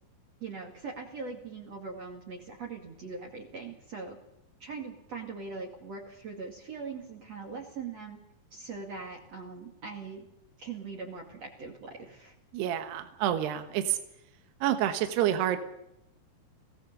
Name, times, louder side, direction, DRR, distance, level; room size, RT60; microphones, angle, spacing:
voice 1, 0.4-4.2 4.6-8.2 8.5-10.3 10.6-12.3, right 4 dB, 45° right, 1 dB, 3.0 m, -41 dB
voice 2, 12.5-14.0 14.6-15.6, right 11 dB, 75° right, 8 dB, 3.4 m, -28 dB
23.0 x 17.5 x 6.8 m, 0.82 s
omnidirectional pair, 4.8 m